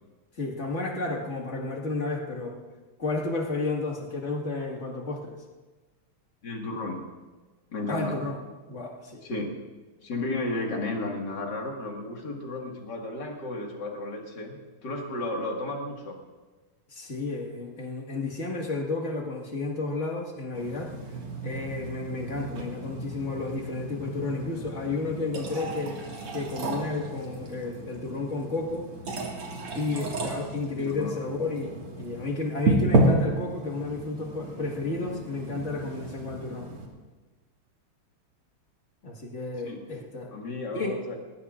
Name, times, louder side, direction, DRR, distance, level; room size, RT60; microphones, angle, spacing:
voice 1, 0.4-2.6 3.0-5.4 7.9-8.4 8.7-9.2 16.9-20.9 21.4-26.0 26.3-28.9 29.7-36.7 39.0-40.3 40.7-41.0, left 3 dB, 35° left, -1 dB, 2.1 m, -32 dB
voice 2, 6.4-7.0 7.7-8.2 9.2-9.5 10.0-16.2 30.8-31.2 39.6-41.2, left 2 dB, 50° left, 0 dB, 2.5 m, -33 dB
sound 1, 20.5-36.9, right 2 dB, 85° right, 2.9 m, -32 dB
20.0 x 19.5 x 2.5 m, 1.3 s
omnidirectional pair, 2.4 m